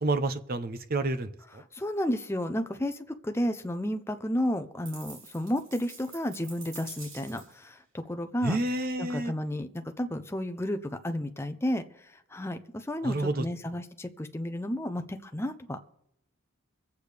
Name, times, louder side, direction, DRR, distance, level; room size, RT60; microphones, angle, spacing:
voice 1, 0.0-1.6 8.4-9.3 13.0-13.4, right 2 dB, 45° right, 10 dB, 0.7 m, -29 dB
voice 2, 1.7-8.6 9.0-15.8, equal, 10° left, 7 dB, 0.6 m, -32 dB
sound 1, 4.9-7.6, right 4 dB, 60° right, 3.4 m, -47 dB
24.5 x 8.2 x 3.4 m, 0.76 s
head